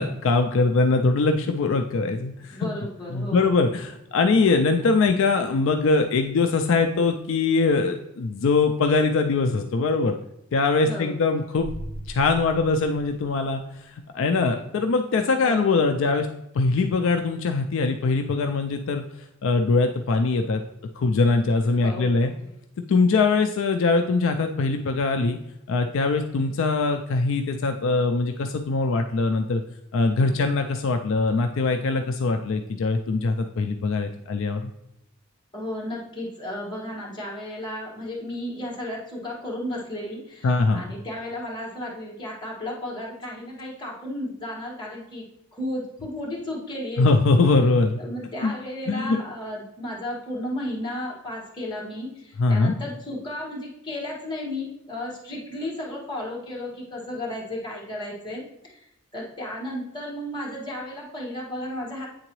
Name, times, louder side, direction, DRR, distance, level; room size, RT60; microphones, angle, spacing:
voice 1, 0.0-2.7 3.1-10.1 10.5-11.7 12.1-13.6 14.1-16.3 16.5-19.0 19.4-20.6 21.0-22.3 22.9-25.4 25.7-29.6 29.9-34.7 40.4-40.8 47.0-48.0 48.4-48.5 48.9-49.2 52.4-52.7, left 3 dB, 70° left, 5 dB, 0.4 m, -22 dB
voice 2, 2.5-3.6 10.8-11.2 15.4-15.8 21.8-22.4 30.2-30.5 35.5-45.3 45.5-47.2 48.0-58.9 59.1-62.1, left 1 dB, 20° left, -4 dB, 1.6 m, -34 dB
sound 1, 11.6-13.8, right 1 dB, 90° right, 1.1 m, -39 dB
8.8 x 3.8 x 3.0 m, 0.81 s
head